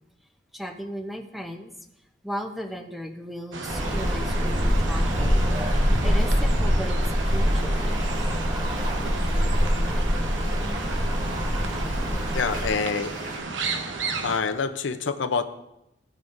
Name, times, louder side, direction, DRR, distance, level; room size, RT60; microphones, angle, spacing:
voice 1, 0.5-1.7 2.2-5.5 6.0-7.0 7.2-8.0 10.1-10.3, equal, ahead, 4 dB, 0.8 m, -36 dB
sound 1, 3.5-14.4, right 4 dB, 85° right, 0.9 m, -33 dB
Rain, 3.7-12.7, equal, 25° right, 4.1 m, -24 dB
sound 2, 8.2-13.4, right 1 dB, 55° right, 3.7 m, -42 dB
voice 2, 12.3-13.1 14.2-15.4, left 5 dB, 85° left, 9 dB, 0.7 m, -26 dB
16.0 x 9.1 x 2.6 m, 0.87 s
head